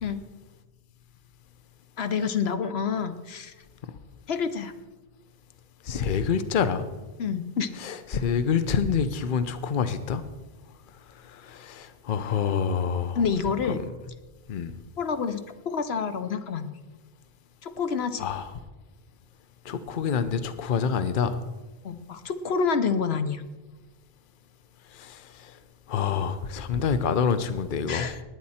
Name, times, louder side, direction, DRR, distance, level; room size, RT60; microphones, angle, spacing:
voice 1, 2.0-3.5 4.3-4.7 7.2-7.7 13.2-13.8 15.0-16.8 17.6-18.3 21.8-23.4 27.9-28.2, left 6 dB, 80° left, 10 dB, 1.0 m, -28 dB
voice 2, 5.8-6.9 7.8-10.2 11.2-13.2 14.5-14.7 18.2-18.5 19.6-21.4 24.9-25.5 25.9-28.1, left 6 dB, 55° left, 11 dB, 0.9 m, -27 dB
19.0 x 9.4 x 4.3 m, 1.2 s
omnidirectional pair, 1.1 m